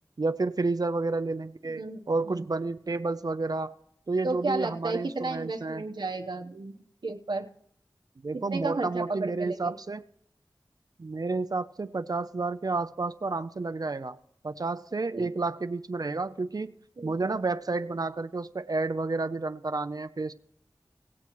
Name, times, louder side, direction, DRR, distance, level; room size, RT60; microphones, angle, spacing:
voice 1, 0.2-3.7 4.1-5.8 8.2-10.0 11.0-14.2 14.4-16.7 17.0-20.3, right 3 dB, 55° right, 9 dB, 0.5 m, -30 dB
voice 2, 1.7-2.4 4.2-7.5 8.5-9.8 15.1-15.3 17.0-17.4, right 3 dB, 75° right, 4 dB, 0.9 m, -33 dB
19.0 x 7.5 x 3.0 m, 0.66 s
wide cardioid pair, 45°, 8 cm